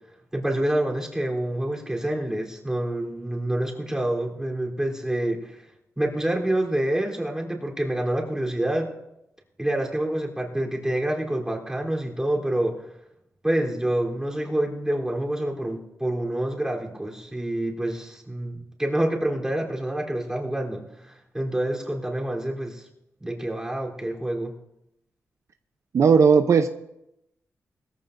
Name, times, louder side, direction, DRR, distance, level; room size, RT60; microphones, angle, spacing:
voice 1, 0.3-5.6 6.0-8.9 9.6-12.8 13.4-22.9 23.2-24.5, right 1 dB, 10° right, -1 dB, 3.5 m, -27 dB
voice 2, 25.9-26.7, right 5 dB, 60° right, 8 dB, 0.7 m, -16 dB
21.0 x 14.5 x 2.6 m, 0.84 s
cardioid pair, 90°, 6 cm